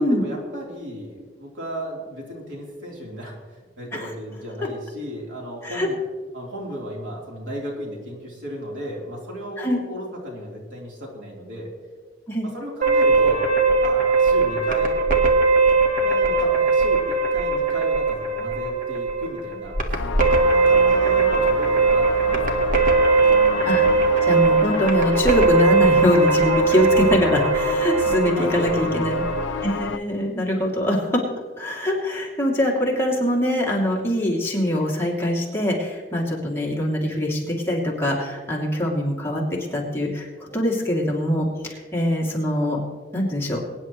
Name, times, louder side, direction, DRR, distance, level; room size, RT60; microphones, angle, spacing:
voice 1, 0.0-6.0 6.3-11.7 12.4-15.0 16.0-20.0 20.5-22.8 28.3-29.0, equal, 80° right, -2 dB, 3.6 m, -34 dB
sound 1, 12.8-29.9, right 4 dB, 50° right, 1.6 m, -20 dB
sound 2, 19.9-30.0, left 6 dB, 80° left, 0.5 m, -30 dB
voice 2, 23.6-29.2 29.6-31.2 31.6-39.4 39.7-42.8 43.1-43.6, left 1 dB, 15° left, -3 dB, 2.6 m, -23 dB
22.5 x 10.0 x 3.1 m, 1.5 s
head